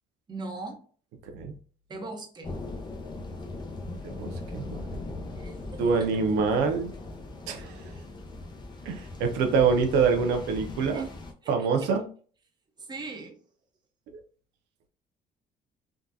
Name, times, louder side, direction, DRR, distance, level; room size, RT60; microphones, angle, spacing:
voice 1, 0.3-0.8 1.9-2.5 5.4-6.1 10.9-11.0 11.4-11.5 11.8-11.9 12.9-13.4, right 3 dB, 25° right, 2 dB, 0.9 m, -39 dB
sound 1, 2.4-11.3, left 2 dB, 25° left, 0.7 m, -39 dB
voice 2, 4.0-5.0 5.8-6.9 7.5-7.9 8.8-11.0 11.5-12.0, right 5 dB, 90° right, 5 dB, 0.6 m, -25 dB
3.6 x 2.3 x 2.6 m, 0.42 s
cardioid pair, 110°, 17 cm